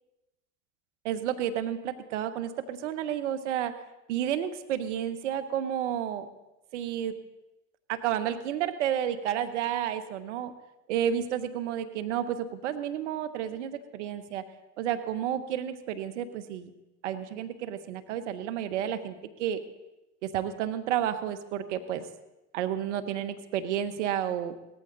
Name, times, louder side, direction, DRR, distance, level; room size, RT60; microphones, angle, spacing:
voice 1, 1.0-3.8 4.1-6.3 6.7-7.1 7.9-10.5 10.9-14.4 14.8-16.7 17.0-19.6 20.2-22.1 22.5-24.5, right 10 dB, 85° right, 11 dB, 1.1 m, -31 dB
17.5 x 14.0 x 3.9 m, 0.96 s
hypercardioid pair, 80°, 35 cm